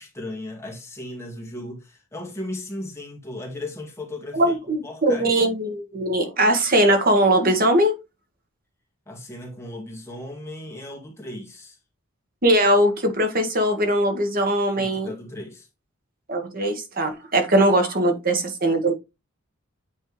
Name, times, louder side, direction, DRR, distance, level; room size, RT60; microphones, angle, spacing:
voice 1, 0.0-4.6 4.8-5.3 9.1-11.8 14.8-15.7, left 1 dB, 15° left, 1.9 m, -36 dB
voice 2, 4.3-7.9 12.4-15.1 16.3-18.9, right 1 dB, 40° right, 1.5 m, -20 dB
8.9 x 4.4 x 3.3 m
head